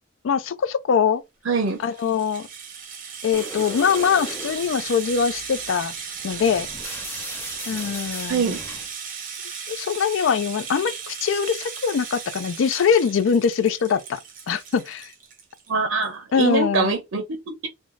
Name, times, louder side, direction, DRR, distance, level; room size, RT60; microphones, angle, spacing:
voice 1, 0.2-1.2 1.8-2.5 3.2-5.9 6.2-6.7 7.7-8.5 9.7-14.2 14.5-15.1 16.3-16.9, left 6 dB, 75° left, 0.4 m, -22 dB
voice 2, 1.4-1.8 8.3-8.6 15.7-17.7, right 4 dB, 75° right, 0.5 m, -24 dB
Rattle (instrument), 1.6-15.7 16.0-16.1 16.4-16.5, right 6 dB, 40° right, 0.8 m, -36 dB
sound 1, 3.3-8.9, left 1 dB, 10° left, 0.4 m, -39 dB
3.1 x 2.2 x 2.5 m
head